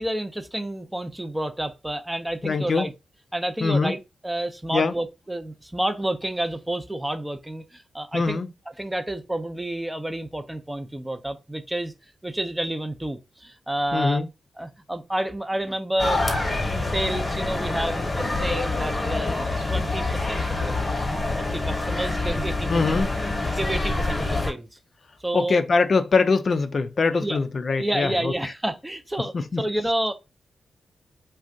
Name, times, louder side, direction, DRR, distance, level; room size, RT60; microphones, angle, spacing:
voice 1, 0.0-2.9 3.3-4.0 4.2-8.4 8.8-11.9 12.2-14.2 14.6-19.4 19.7-20.7 21.4-23.0 23.5-24.7 25.2-25.6 27.1-27.4 27.7-30.1, right 1 dB, 15° right, 0.5 m, -29 dB
voice 2, 2.4-2.9 3.6-3.9 4.7-4.9 8.1-8.5 13.9-14.3 22.7-23.1 25.3-28.5 29.5-29.6, left 4 dB, 60° left, 0.3 m, -23 dB
sound 1, 16.0-24.5, left 2 dB, 35° left, 1.0 m, -26 dB
2.5 x 2.2 x 3.6 m
supercardioid pair, 50°, 0 cm